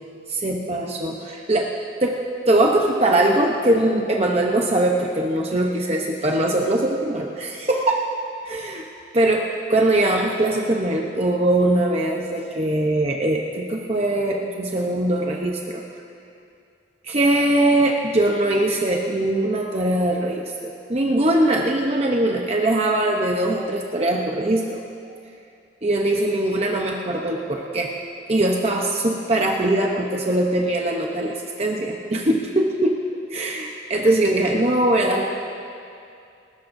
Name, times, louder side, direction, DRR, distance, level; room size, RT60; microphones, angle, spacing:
voice 1, 0.3-1.7 2.0-8.0 8.4-8.8 9.1-9.4 9.7-15.8 17.0-24.8 25.8-27.9 28.3-33.0 33.3-35.2, right 1 dB, 35° right, 0 dB, 0.8 m, -21 dB
28.0 x 13.0 x 2.7 m, 2.5 s
head